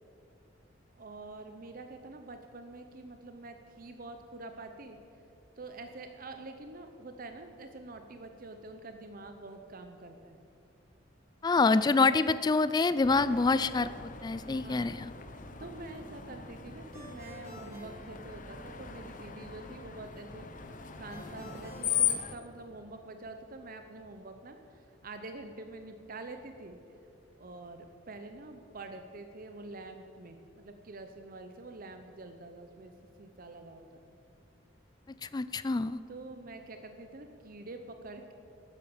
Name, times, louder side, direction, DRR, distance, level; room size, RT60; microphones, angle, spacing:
voice 1, 1.0-5.0 5.6-10.4 14.4-15.0 15.3-26.8 27.4-32.9 33.2-33.8 36.1-38.3, right 2 dB, 45° right, 7 dB, 0.8 m, -46 dB
voice 2, 11.4-13.9 14.2-15.1 35.2-36.0, left 3 dB, 20° left, 14 dB, 0.3 m, -26 dB
Screech, 13.0-22.3, left 8 dB, 40° left, 0.9 m, -38 dB
Ringtone, 16.9-18.9 21.1-23.1, equal, 15° right, 3.0 m, -51 dB
13.0 x 10.5 x 7.1 m, 2.7 s
head